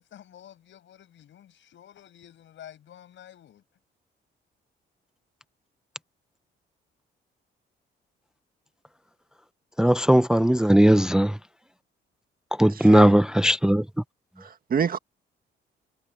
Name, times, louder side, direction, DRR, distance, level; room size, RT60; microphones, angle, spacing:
voice 1, 0.0-3.6, left 10 dB, 70° left, 7.1 m, -50 dB
voice 2, 9.8-11.3 12.6-13.8, equal, 5° right, 0.6 m, -18 dB
voice 3, 12.7-13.1 14.4-15.0, right 7 dB, 45° right, 1.7 m, -27 dB
cardioid pair, 90°, 20 cm